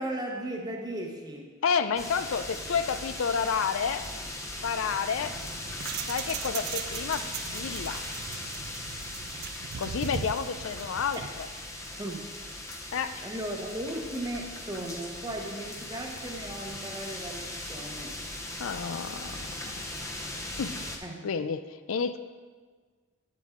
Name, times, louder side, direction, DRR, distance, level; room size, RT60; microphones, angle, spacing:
voice 1, 0.0-1.5 12.0-12.2 13.2-18.2 21.0-21.2, right 1 dB, 20° right, 2 dB, 1.0 m, -36 dB
voice 2, 1.6-4.1 4.6-5.3 6.1-8.0 9.8-11.2 12.9-13.2 18.6-19.9 20.6-20.8 21.2-22.2, left 6 dB, 80° left, 12 dB, 0.4 m, -30 dB
sound 1, 2.0-21.0, left 1 dB, 15° left, 0.8 m, -39 dB
sound 2, 5.2-11.4, right 7 dB, 50° right, 0.3 m, -39 dB
10.5 x 7.5 x 3.7 m, 1.5 s
head